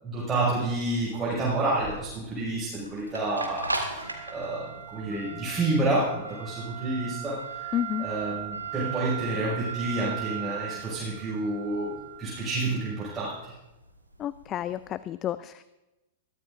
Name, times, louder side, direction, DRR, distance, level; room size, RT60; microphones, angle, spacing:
voice 1, 0.0-11.9 12.2-13.5, right 2 dB, 15° right, -8 dB, 5.8 m, -29 dB
sound 1, 0.7-14.8, right 6 dB, 90° right, 2.1 m, -38 dB
voice 2, 7.7-8.1 14.2-15.6, left 11 dB, 30° left, 16 dB, 0.3 m, -31 dB
21.5 x 14.0 x 2.6 m, 1.0 s
figure-of-eight pair, 100°, 0 cm